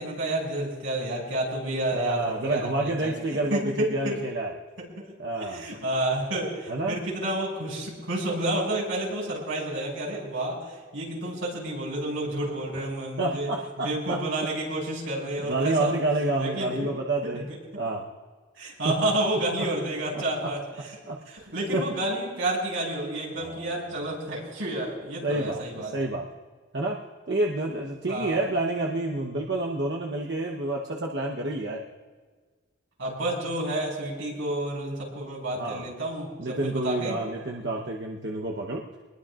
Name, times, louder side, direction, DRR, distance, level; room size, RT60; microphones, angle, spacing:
voice 1, 0.0-3.2 3.5-4.2 4.8-5.1 5.4-13.5 13.8-16.0 16.4-16.9 17.2-17.6 18.6-20.9 21.3-25.9 28.1-28.4 33.0-37.2, right 1 dB, 85° right, -3 dB, 6.3 m, -30 dB
voice 2, 1.9-4.5 5.2-5.7 6.7-7.0 12.7-12.9 13.2-14.2 15.4-17.4 17.7-18.0 18.8-19.0 19.6-19.7 20.1-20.5 21.1-21.5 21.7-21.8 23.4-23.8 25.2-26.3 26.7-27.0 27.3-31.8 35.6-35.9 36.4-38.9, right 2 dB, 60° right, -1 dB, 1.0 m, -29 dB
24.0 x 20.5 x 2.5 m, 1.5 s
head